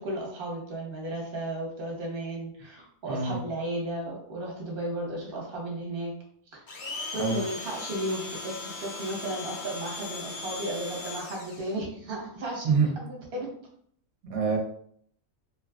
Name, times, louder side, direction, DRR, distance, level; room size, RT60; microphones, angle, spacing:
voice 1, 0.0-6.1 6.5-6.7 7.1-13.5, right 1 dB, 45° right, -2 dB, 1.0 m, -34 dB
voice 2, 3.1-3.4 7.2-7.4 12.6-13.0 14.2-14.6, right 5 dB, 85° right, 0 dB, 1.1 m, -25 dB
Domestic sounds home sounds, 6.7-11.8, left 3 dB, 75° left, 0.4 m, -38 dB
2.9 x 2.4 x 2.2 m, 0.63 s
omnidirectional pair, 1.4 m